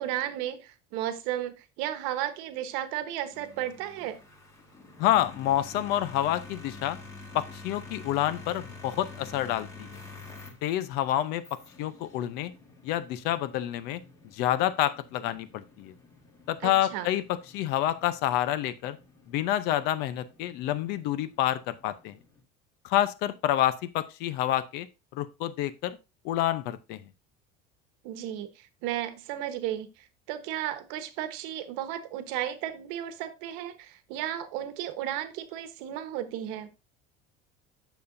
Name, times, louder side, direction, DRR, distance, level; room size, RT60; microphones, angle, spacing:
voice 1, 0.0-4.2 16.6-17.1 28.0-36.7, right 12 dB, 75° right, 1.2 m, -34 dB
sound 1, 3.3-22.4, left 3 dB, 15° left, 1.4 m, -49 dB
voice 2, 5.0-7.0 7.3-9.9 10.6-11.4 11.8-12.5 12.8-14.0 14.3-15.9 16.5-17.2 17.5-19.0 19.3-22.2 22.8-24.9 25.1-26.0 26.2-27.0, left 13 dB, 55° left, 0.8 m, -28 dB
9.2 x 7.1 x 2.6 m
cardioid pair, 175°, 20 cm